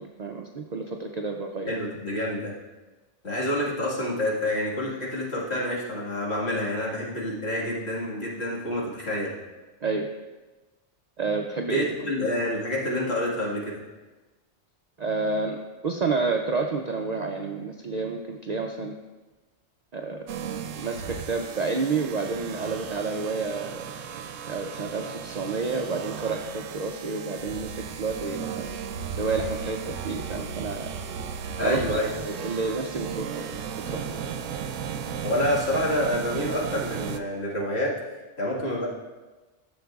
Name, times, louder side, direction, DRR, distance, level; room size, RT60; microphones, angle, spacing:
voice 1, 0.0-1.8 9.8-10.1 11.2-11.9 15.0-19.0 19.9-20.2 20.7-23.9 24.5-28.7 29.2-31.0 31.6-33.5 33.9-34.2, right 4 dB, 55° right, 3 dB, 0.4 m, -30 dB
voice 2, 1.7-2.5 3.2-9.3 11.7-13.8 31.6-32.1 35.2-38.0 38.4-38.9, left 1 dB, 55° left, -5 dB, 2.0 m, -28 dB
sound 1, 20.3-37.2, right 7 dB, 80° right, 0.9 m, -35 dB
13.0 x 7.1 x 2.4 m, 1.2 s
omnidirectional pair, 1.3 m